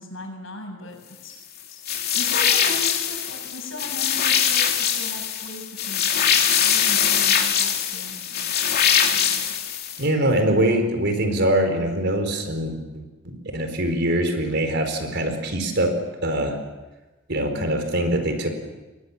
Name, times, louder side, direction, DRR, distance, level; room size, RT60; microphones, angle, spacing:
voice 1, 0.0-1.3 1.7-1.8 2.1-6.0 6.6-8.5 9.1-9.5, left 1 dB, 85° left, 3 dB, 7.0 m, -37 dB
sound 1, 1.9-10.0, left 8 dB, 55° left, 2.8 m, -22 dB
voice 2, 10.0-13.0 13.5-15.9 16.2-16.6 17.3-18.5, right 1 dB, 60° right, 6 dB, 4.6 m, -23 dB
28.5 x 21.5 x 7.4 m, 1.1 s
head